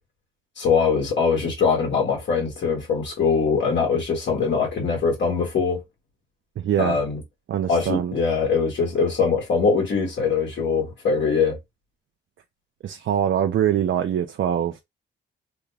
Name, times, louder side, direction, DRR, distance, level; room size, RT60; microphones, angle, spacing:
voice 1, 0.6-5.8 6.8-7.2 7.7-11.6, left 5 dB, 65° left, 1.8 m, -22 dB
voice 2, 6.6-7.0 7.5-8.1 12.8-14.8, right 10 dB, 70° right, 0.6 m, -23 dB
3.6 x 2.3 x 3.3 m
cardioid pair, 85°, 20 cm